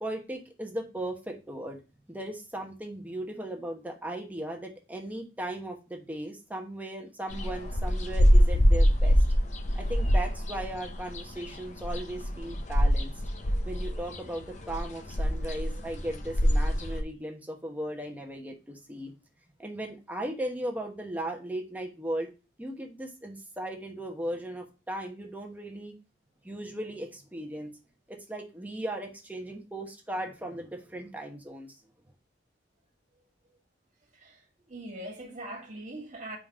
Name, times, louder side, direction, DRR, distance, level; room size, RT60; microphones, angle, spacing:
voice 1, 0.0-1.8 2.1-9.2 9.7-13.1 13.6-19.1 19.6-22.3 22.6-25.9 26.4-27.7 28.1-31.8, right 1 dB, 10° right, 1.1 m, -37 dB
sound 1, 7.3-17.0, equal, 40° left, 0.8 m, -24 dB
voice 2, 34.1-36.4, right 1 dB, 40° right, 2.0 m, -42 dB
5.1 x 4.0 x 4.9 m
head